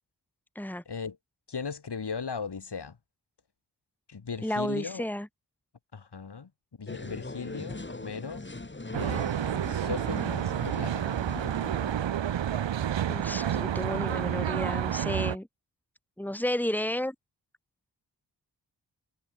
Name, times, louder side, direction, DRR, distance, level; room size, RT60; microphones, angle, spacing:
voice 1, 0.8-1.2 1.5-3.0 4.1-5.0 5.9-6.5 6.8-8.4 8.9-9.4 9.7-11.1, left 5 dB, 65° left, 5.0 m, -37 dB
voice 2, 4.4-5.3 13.1-15.5 16.2-17.1, left 1 dB, 5° left, 3.0 m, -32 dB
sound 1, 6.9-12.0, left 2 dB, 25° left, 4.3 m, -41 dB
Traffic noise roadway noise, 8.9-15.4, right 10 dB, 90° right, 0.9 m, -29 dB
wide cardioid pair, 80°, 43 cm